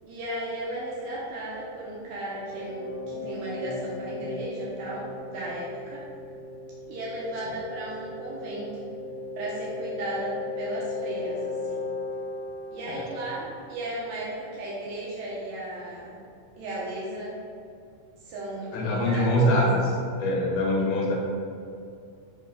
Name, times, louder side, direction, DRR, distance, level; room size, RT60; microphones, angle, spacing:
voice 1, 0.0-6.1 6.9-8.9 9.4-11.9 12.7-16.2 16.6-17.4 18.2-19.7, right 1 dB, 80° right, -6 dB, 2.6 m, -35 dB
sound 1, 2.4-14.0, left 3 dB, 90° left, 2.6 m, -36 dB
voice 2, 18.7-19.8 20.2-21.1, equal, 75° left, -3 dB, 1.5 m, -23 dB
7.2 x 3.0 x 4.9 m, 2.4 s
omnidirectional pair, 4.2 m